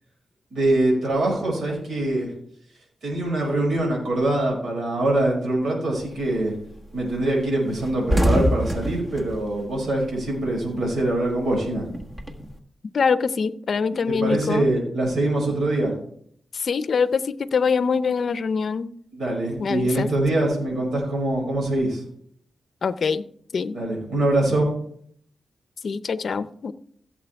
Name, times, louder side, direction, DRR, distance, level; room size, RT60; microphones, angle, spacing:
voice 1, 0.5-2.3 3.0-6.5 6.9-11.8 14.1-15.9 19.1-22.0 23.7-24.7, right 1 dB, 75° right, -2 dB, 5.5 m, -23 dB
sound 1, 6.1-6.3 6.7-6.9 7.1-7.3 7.6-10.6 10.9-12.5, equal, 25° right, 1.5 m, -25 dB
voice 2, 12.9-14.7 16.5-18.9 19.6-20.1 22.8-23.2 23.5-23.8 25.8-26.7, left 5 dB, 60° left, 13 dB, 0.6 m, -24 dB
16.0 x 7.4 x 3.5 m, 0.64 s
cardioid pair, 80°, 0 cm